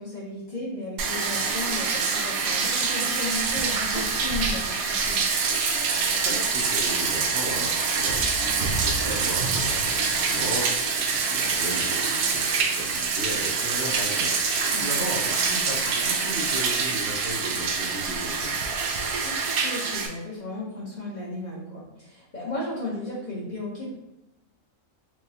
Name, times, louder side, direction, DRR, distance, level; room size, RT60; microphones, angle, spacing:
voice 1, 0.0-5.2 14.7-15.2 19.2-23.9, left 2 dB, 35° left, -6 dB, 0.8 m, -35 dB
Bathtub (filling or washing), 1.0-20.1, right 5 dB, 90° right, 1.0 m, -25 dB
voice 2, 5.8-18.7, right 1 dB, 55° right, -3 dB, 0.8 m, -36 dB
4.6 x 2.2 x 2.7 m, 0.94 s
omnidirectional pair, 1.4 m